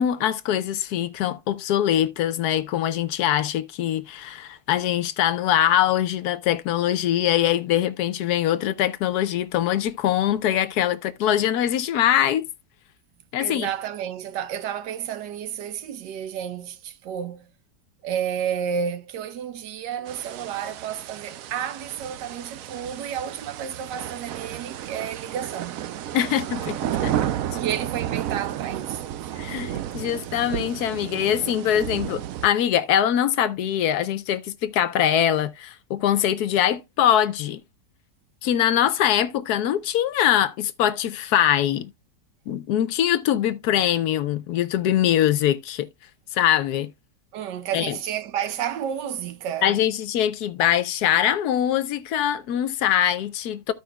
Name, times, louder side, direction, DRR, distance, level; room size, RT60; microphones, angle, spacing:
voice 1, 0.0-12.5 13.3-13.7 26.1-27.2 29.4-37.6 38.4-41.9 42.5-45.9 46.3-46.9 47.7-48.0 49.6-53.7, left 11 dB, 75° left, 1.1 m, -23 dB
voice 2, 13.4-17.5 18.0-25.8 27.5-29.3 47.3-49.8, right 8 dB, 85° right, 1.4 m, -31 dB
sound 1, 20.1-32.5, right 11 dB, 70° right, 0.8 m, -32 dB
14.5 x 5.0 x 2.2 m
omnidirectional pair, 1.8 m